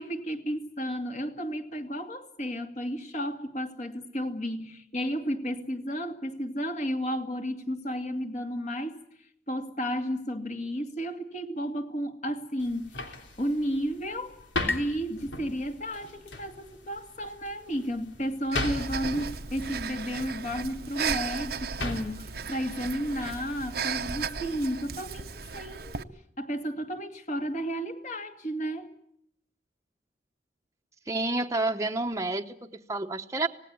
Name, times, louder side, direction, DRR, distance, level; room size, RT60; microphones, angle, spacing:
voice 1, 0.0-9.0 9.5-26.1 26.4-28.9, equal, 40° left, 5 dB, 2.3 m, -33 dB
sound 1, 12.6-23.8, left 2 dB, 90° left, 3.4 m, -39 dB
sound 2, 13.2-16.6, left 3 dB, 15° left, 1.9 m, -40 dB
Breathing, 18.5-26.0, right 6 dB, 55° right, 0.9 m, -35 dB
voice 2, 31.1-33.5, right 2 dB, 15° right, 4 dB, 1.0 m, -29 dB
26.0 x 18.5 x 9.6 m, 0.74 s
head